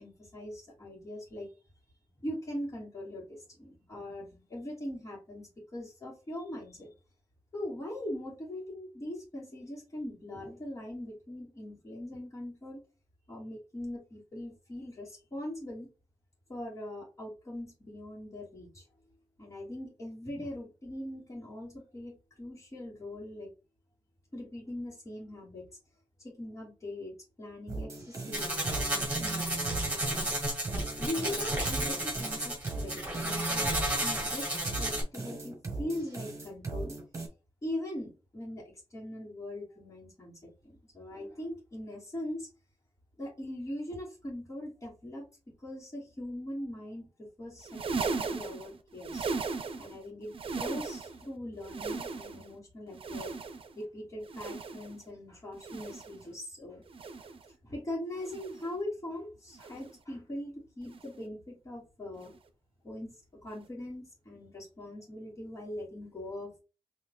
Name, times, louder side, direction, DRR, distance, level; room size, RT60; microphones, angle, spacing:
voice 1, 0.0-1.5 2.2-6.9 7.5-12.8 13.3-15.9 16.5-18.8 19.4-23.5 24.3-25.7 26.2-30.3 31.0-37.0 37.6-40.5 40.9-42.5 43.2-45.3 45.6-49.3 49.8-53.3 53.7-56.9 57.6-62.3 62.8-63.1 63.4-66.6, left 1 dB, 30° left, 2.4 m, -41 dB
sound 1, 27.7-37.3, right 3 dB, 30° right, 1.3 m, -38 dB
sound 2, 28.3-35.0, right 1 dB, 15° right, 2.1 m, -32 dB
sound 3, 47.6-50.0 50.3-51.3 51.6-52.5 52.9-53.8 54.2-55.0 55.5-56.2 56.9-57.5 58.2-58.7 59.5-60.0 60.9-61.2 62.2-62.4 63.5-63.6, right 4 dB, 60° right, 0.6 m, -37 dB
4.0 x 3.0 x 3.0 m
wide cardioid pair, 175°, 10 cm